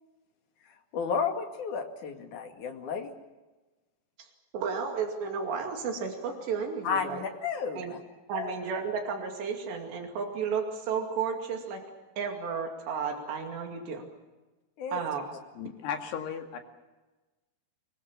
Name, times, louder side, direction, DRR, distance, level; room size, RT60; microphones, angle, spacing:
voice 1, 0.9-3.1 6.8-8.0 8.3-8.5 14.8-15.0, left 6 dB, 50° left, 4 dB, 3.3 m, -32 dB
voice 2, 4.5-7.2 7.7-7.9 8.3-11.8 12.2-14.0 14.9-15.2, right 6 dB, 80° right, 3 dB, 4.6 m, -33 dB
voice 3, 15.6-16.6, left 7 dB, 75° left, 4 dB, 4.2 m, -35 dB
24.5 x 22.5 x 7.3 m, 1.2 s
omnidirectional pair, 4.9 m